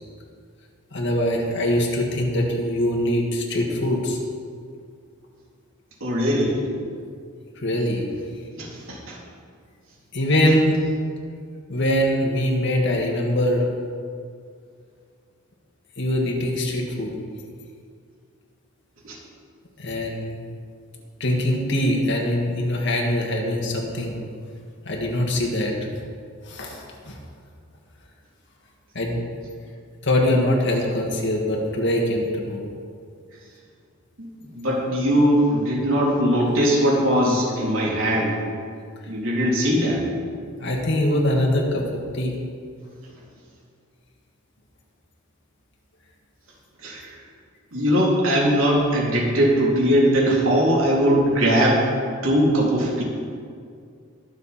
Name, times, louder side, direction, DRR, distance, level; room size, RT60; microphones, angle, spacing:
voice 1, 0.9-4.2 7.6-8.0 10.1-10.8 11.7-13.7 16.0-17.1 19.8-20.4 21.2-24.2 24.9-25.7 26.5-27.2 28.9-29.2 30.0-32.6 40.6-41.8 42.1-42.3, left 1 dB, 60° left, 0 dB, 2.0 m, -23 dB
voice 2, 6.0-6.6 8.6-9.2 19.0-19.2 34.2-38.4 39.1-40.0 46.8-47.1 47.7-51.9 52.2-53.0, equal, 75° right, -4 dB, 3.2 m, -20 dB
21.0 x 7.1 x 4.4 m, 2.2 s
head